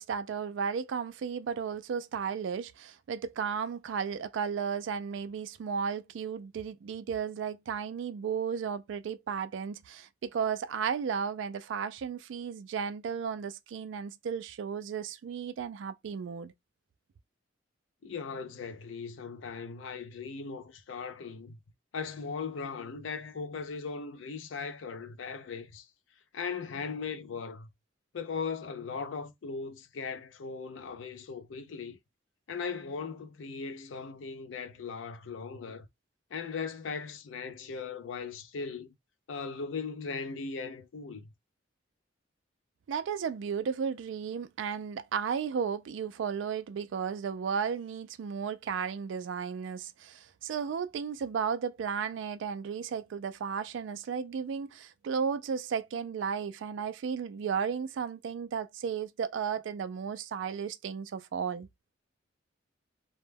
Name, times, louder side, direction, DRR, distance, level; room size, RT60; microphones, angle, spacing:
voice 1, 0.0-16.5 42.9-61.7, right 6 dB, 75° right, 0.3 m, -34 dB
voice 2, 18.0-21.6 21.9-25.9 26.3-27.7 28.1-32.0 32.5-35.9 36.3-38.9 39.3-41.3, left 5 dB, 80° left, 0.4 m, -38 dB
2.2 x 2.1 x 3.2 m
head